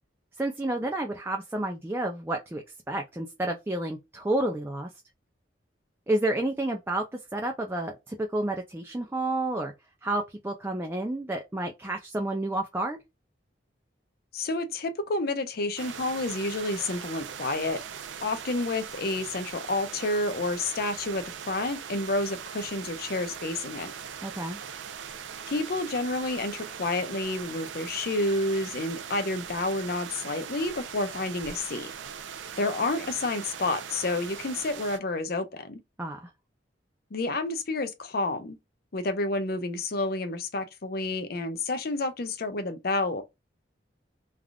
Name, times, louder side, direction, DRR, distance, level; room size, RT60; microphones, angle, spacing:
voice 1, 0.4-4.9 6.1-9.7 10.0-13.0 24.2-24.6 36.0-36.3, right 1 dB, 15° right, 0.4 m, -30 dB
voice 2, 14.3-17.8 18.2-23.9 25.5-31.9 32.6-35.8 37.1-38.6 38.9-43.2, left 2 dB, 55° left, 0.6 m, -30 dB
sound 1, 15.8-35.0, right 7 dB, 85° right, 0.5 m, -40 dB
3.4 x 2.4 x 2.3 m
head